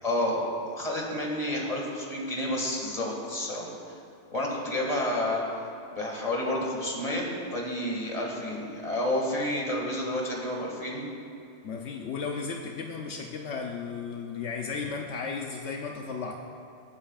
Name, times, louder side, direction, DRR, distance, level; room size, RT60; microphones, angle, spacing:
voice 1, 0.0-0.4 0.7-4.0 4.3-5.6 5.9-11.0, left 1 dB, 30° left, -2 dB, 2.1 m, -30 dB
voice 2, 11.6-16.3, left 5 dB, 75° left, 1 dB, 1.0 m, -34 dB
22.5 x 8.7 x 2.4 m, 2.8 s
omnidirectional pair, 1.2 m